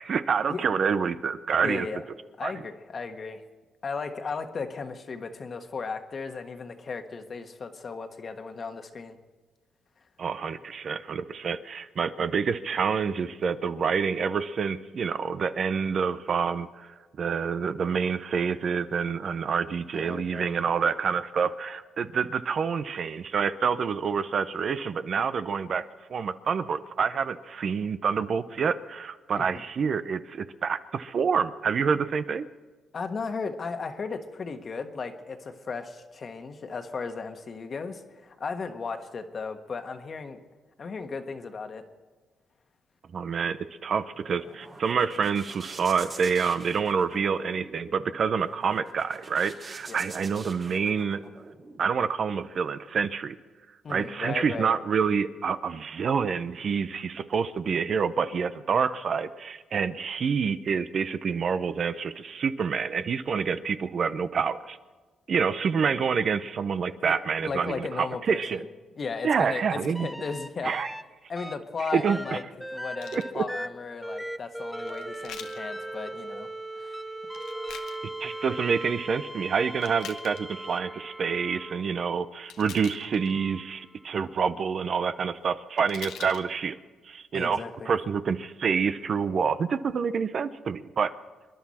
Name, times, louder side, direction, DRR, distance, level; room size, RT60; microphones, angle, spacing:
voice 1, 0.0-1.9 2.4-2.5 10.2-25.8 26.1-32.4 43.1-51.2 51.8-53.4 53.9-64.8 65.3-68.6 69.2-70.1 70.6-70.9 71.9-72.4 73.1-73.4 78.2-86.8 87.0-91.1, right 6 dB, 50° right, 12 dB, 0.7 m, -27 dB
voice 2, 1.6-2.0 2.4-3.4 3.8-9.2 19.9-20.5 29.4-29.6 32.9-40.4 40.8-41.8 49.9-50.0 53.8-54.8 67.0-67.1 67.4-68.6 69.0-70.7 71.3-72.4 72.7-76.5 76.7-77.0 87.3-87.9, left 4 dB, 45° left, 7 dB, 1.4 m, -35 dB
sound 1, 44.1-51.8, right 3 dB, 35° right, 1.5 m, -46 dB
sound 2, 69.9-71.0 71.4-82.1 83.0-84.5 86.3-86.4, right 1 dB, ahead, 0.5 m, -39 dB
sound 3, 73.0-73.3 74.9-75.6 77.3-78.0 78.5-78.9 79.7-80.5 82.5-83.3 85.5-85.6 85.8-86.4 87.0-87.1, left 9 dB, 80° left, 0.9 m, -43 dB
27.0 x 11.0 x 4.3 m, 1.3 s
cardioid pair, 90°, 0 cm